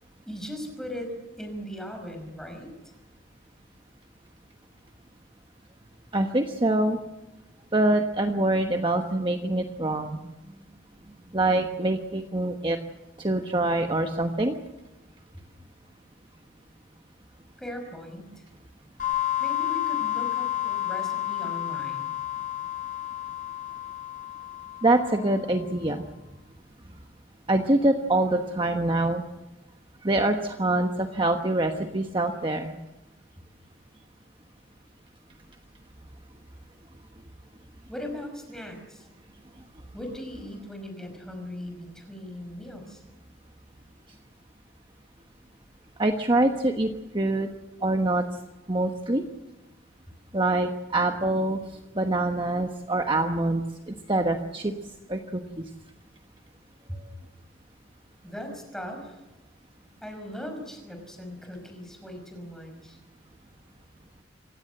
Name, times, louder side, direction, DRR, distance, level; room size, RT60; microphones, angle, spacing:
voice 1, 0.3-2.9 17.6-18.5 19.4-22.1 37.9-39.1 39.9-43.0 56.9-57.0 58.2-59.2 59.9-63.0, equal, 5° left, 4 dB, 5.4 m, -39 dB
voice 2, 6.1-7.0 7.7-10.2 11.3-12.8 13.2-14.5 24.8-26.0 27.5-29.2 30.0-32.8 46.0-46.9 47.1-47.5 47.8-48.2 48.7-49.2 50.3-51.6 52.0-54.7 55.1-55.7, right 2 dB, 25° right, 4 dB, 1.2 m, -25 dB
sound 1, 19.0-25.5, left 14 dB, 40° left, 6.0 m, -31 dB
27.0 x 16.5 x 7.9 m, 1.0 s
head